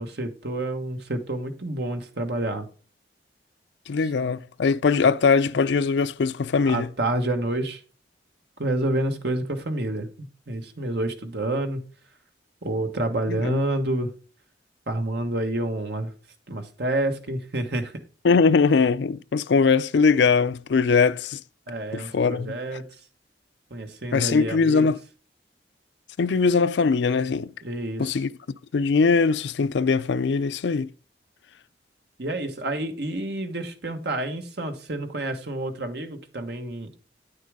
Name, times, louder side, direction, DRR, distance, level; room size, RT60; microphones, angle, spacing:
voice 1, 0.0-2.6 6.6-7.8 8.6-10.1 10.5-11.8 12.6-14.1 14.9-16.1 16.5-17.9 21.7-22.8 23.7-24.8 27.6-28.1 32.2-36.9, right 1 dB, 65° right, 1.3 m, -28 dB
voice 2, 3.9-6.9 13.3-13.6 18.2-21.4 21.9-22.6 24.1-25.0 26.2-27.5 28.0-28.3 28.7-30.9, left 5 dB, 75° left, 0.4 m, -21 dB
9.3 x 6.6 x 3.6 m
head